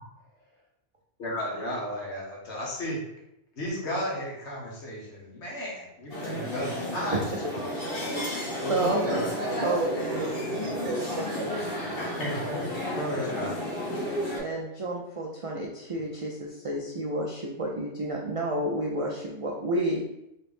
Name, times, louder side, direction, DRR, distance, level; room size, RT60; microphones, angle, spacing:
voice 1, 1.2-3.0 3.6-7.6 8.6-9.2 12.0-12.7 12.9-13.6, equal, 75° left, -4 dB, 1.4 m, -34 dB
sound 1, 6.1-14.4, left 1 dB, 55° left, 1.6 m, -32 dB
voice 2, 8.1-10.4 14.4-20.0, right 1 dB, 50° right, -2 dB, 0.4 m, -30 dB
voice 3, 9.0-11.5, right 2 dB, 75° right, 1 dB, 1.1 m, -34 dB
4.2 x 2.5 x 3.4 m, 0.84 s
omnidirectional pair, 1.2 m